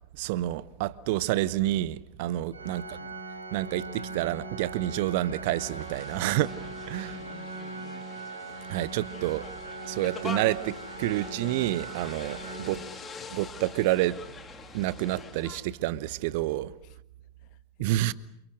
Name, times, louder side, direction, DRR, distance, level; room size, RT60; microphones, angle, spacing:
voice 1, 0.2-3.0 3.5-6.5 6.9-7.1 8.7-9.5 9.8-12.4 12.7-12.8 13.3-14.2 14.7-16.7 17.8-18.1, right 15 dB, 50° right, 1.0 m, -28 dB
Organ, 2.5-13.4, right 3 dB, 80° right, 5.1 m, -40 dB
voice 2, 2.6-3.1 7.1-8.1 12.7-12.9 16.8-16.9 17.4-18.1, left 12 dB, 45° left, 1.7 m, -51 dB
sound 1, 5.6-15.6, left 4 dB, 20° left, 3.7 m, -44 dB
29.0 x 29.0 x 6.4 m
figure-of-eight pair, 90°, 0 cm